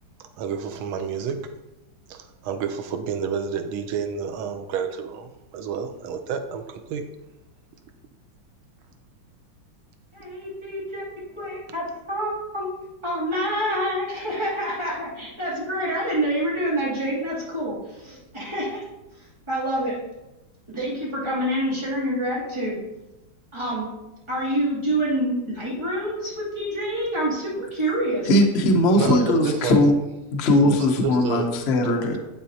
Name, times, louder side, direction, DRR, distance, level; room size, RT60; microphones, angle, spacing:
voice 1, 0.2-1.4 2.1-7.0 28.9-29.8 30.7-31.5 31.8-32.2, right 6 dB, 80° right, 7 dB, 1.4 m, -30 dB
voice 2, 10.1-11.0 11.4-12.7 13.0-18.9 19.2-20.0 20.7-22.8 23.5-23.9 24.3-28.3, right 1 dB, 15° right, -8 dB, 2.4 m, -27 dB
voice 3, 28.3-30.0 30.3-32.2, left 1 dB, 70° left, 3 dB, 0.6 m, -19 dB
10.5 x 4.0 x 2.7 m, 0.98 s
omnidirectional pair, 2.3 m